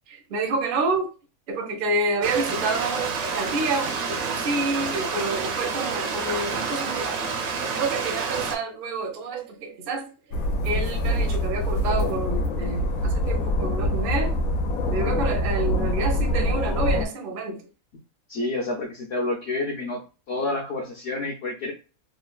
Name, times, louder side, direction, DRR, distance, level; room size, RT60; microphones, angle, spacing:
voice 1, 0.1-1.1 1.5-7.2 7.5-10.1 10.6-14.4 14.9-17.6, right 3 dB, 55° right, 0.6 m, -28 dB
Stream, 2.2-8.6, right 5 dB, 85° right, 1.1 m, -29 dB
sound 1, 10.3-17.1, left 1 dB, 85° left, 1.0 m, -24 dB
voice 2, 18.3-20.0 20.3-21.7, left 2 dB, 60° left, 0.8 m, -28 dB
3.0 x 2.1 x 2.3 m
omnidirectional pair, 1.5 m